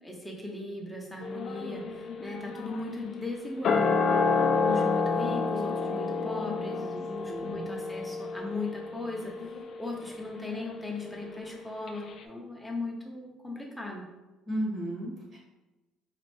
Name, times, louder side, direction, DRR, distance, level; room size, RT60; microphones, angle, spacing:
voice 1, 0.0-4.0 4.6-9.5 9.8-14.1, left 2 dB, ahead, -1 dB, 0.7 m, -38 dB
sound 1, 1.2-11.6 11.9-12.0, left 4 dB, 50° left, 0.4 m, -30 dB
voice 2, 7.3-7.6 14.5-15.4, right 1 dB, 35° right, -4 dB, 1.3 m, -34 dB
4.2 x 2.5 x 3.1 m, 1.1 s
cardioid pair, 135°, 0 cm